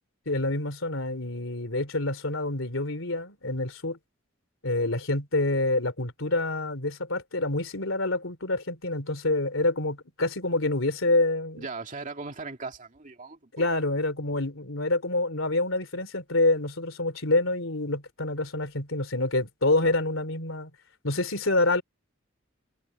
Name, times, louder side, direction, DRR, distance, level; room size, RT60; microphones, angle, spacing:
voice 1, 0.2-4.0 4.6-11.7 13.5-20.7 21.0-21.8, left 2 dB, 70° left, 3.3 m, -27 dB
voice 2, 11.6-13.6 19.8-19.9, right 3 dB, 40° right, 2.3 m, -38 dB
head